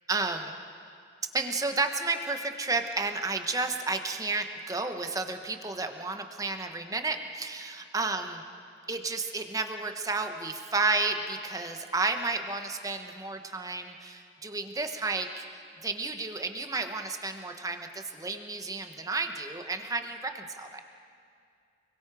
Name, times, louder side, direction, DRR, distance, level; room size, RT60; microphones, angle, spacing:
voice 1, 0.1-0.5 1.3-8.4 8.9-15.4 15.8-20.8, right 3 dB, 20° right, 5 dB, 1.2 m, -32 dB
29.5 x 22.0 x 5.0 m, 2.4 s
head